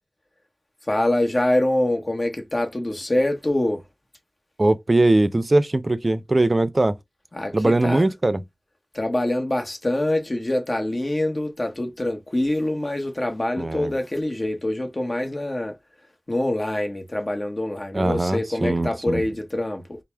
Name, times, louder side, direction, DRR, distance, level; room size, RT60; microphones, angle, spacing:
voice 1, 0.9-3.8 7.3-8.1 8.9-15.8 16.3-20.0, left 1 dB, 40° left, 1.0 m, -25 dB
voice 2, 4.6-7.0 7.5-8.4 13.6-13.9 17.9-19.2, right 2 dB, 40° right, 0.4 m, -20 dB
4.2 x 2.0 x 3.3 m
wide cardioid pair, 55°, 0 cm